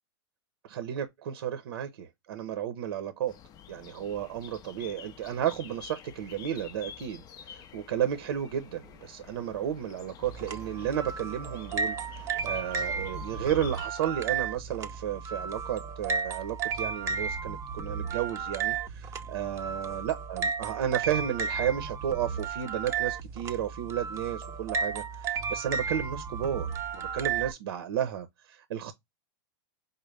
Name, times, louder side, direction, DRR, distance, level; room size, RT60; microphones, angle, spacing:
voice 1, 0.6-3.4 3.7-28.9, right 10 dB, 75° right, 0.7 m, -33 dB
sound 1, 3.3-13.9, left 9 dB, 30° left, 0.4 m, -49 dB
sound 2, 10.2-27.5, right 5 dB, 20° right, 0.5 m, -34 dB
5.2 x 2.1 x 3.2 m
hypercardioid pair, 130°, 13 cm